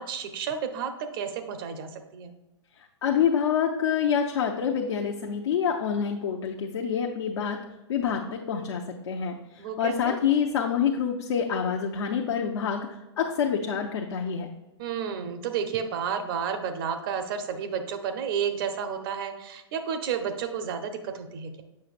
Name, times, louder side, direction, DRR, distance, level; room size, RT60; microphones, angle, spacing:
voice 1, 0.0-2.3 9.6-10.2 14.8-21.6, right 7 dB, 50° right, 7 dB, 0.9 m, -31 dB
voice 2, 3.0-7.6 7.9-12.9 13.2-14.5, left 7 dB, 65° left, 0 dB, 0.7 m, -27 dB
7.5 x 5.7 x 2.5 m, 1.1 s
hypercardioid pair, 115°, 15 cm